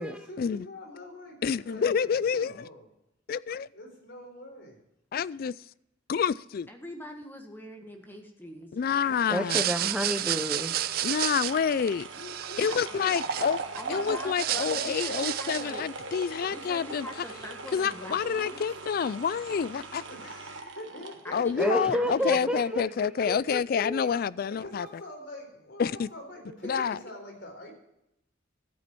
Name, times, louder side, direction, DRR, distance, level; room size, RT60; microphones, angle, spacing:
voice 1, 0.0-2.9 3.7-4.8 12.1-13.6 20.1-21.8 22.4-22.9 24.4-27.7, left 1 dB, 65° left, 4.0 m, -45 dB
voice 2, 1.4-2.7 3.3-3.7 5.1-5.5 6.1-6.7 8.7-9.6 11.0-12.1 12.6-13.6 13.9-17.1 17.7-20.0 21.3-24.9 25.8-26.1 26.6-27.0, left 6 dB, 50° left, 0.3 m, -28 dB
voice 3, 6.7-8.7 13.7-15.9 16.5-18.6 21.2-22.5, left 1 dB, 10° left, 1.6 m, -43 dB
sound 1, 9.0-22.2 22.6-22.7, right 3 dB, 85° right, 1.5 m, -40 dB
voice 4, 9.3-10.7 21.6-24.1, equal, 5° right, 0.9 m, -30 dB
sound 2, 9.4-13.8 14.2-15.8, right 13 dB, 50° right, 0.4 m, -31 dB
13.0 x 8.7 x 4.5 m
head